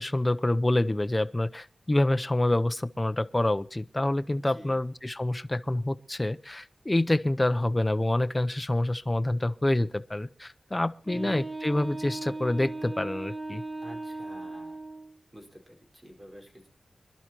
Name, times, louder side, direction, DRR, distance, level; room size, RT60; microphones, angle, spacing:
voice 1, 0.0-13.6, left 1 dB, 15° left, 0.6 m, -27 dB
voice 2, 4.3-4.8 11.1-11.4 13.8-14.8 15.3-16.7, equal, 20° right, 4.7 m, -48 dB
Wind instrument woodwind instrument, 11.0-15.1, right 2 dB, 40° right, 2.6 m, -37 dB
25.5 x 11.5 x 3.0 m
wide cardioid pair, 125°, 0 cm